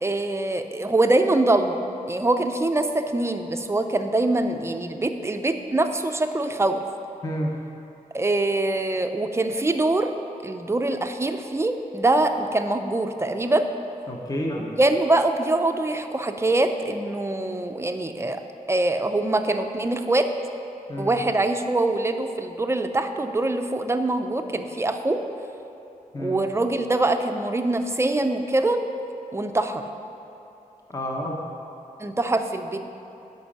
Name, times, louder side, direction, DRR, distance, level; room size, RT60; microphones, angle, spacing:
voice 1, 0.0-1.8 2.1-6.8 8.1-10.1 10.4-13.7 14.8-18.4 18.7-20.3 21.0-25.2 26.2-28.8 29.3-29.8 32.0-32.9, right 2 dB, 20° right, 7 dB, 0.5 m, -23 dB
voice 2, 14.1-14.7 20.9-21.2 26.1-26.4 30.9-31.4, equal, 25° left, -1 dB, 1.0 m, -29 dB
10.0 x 5.3 x 7.2 m, 2.8 s
wide cardioid pair, 105°, 14 cm